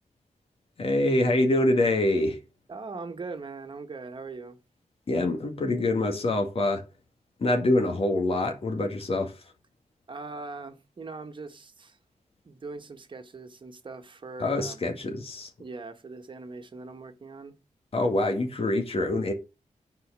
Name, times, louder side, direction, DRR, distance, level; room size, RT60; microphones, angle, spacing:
voice 1, 0.8-2.4 5.1-6.9 7.4-9.3 14.4-15.5 17.9-19.3, left 2 dB, 50° left, 2.2 m, -25 dB
voice 2, 2.7-4.6 10.1-12.0 12.4-14.8 15.6-17.5, right 3 dB, 40° right, 1.6 m, -40 dB
9.4 x 4.8 x 7.5 m
wide cardioid pair, 145°, 13 cm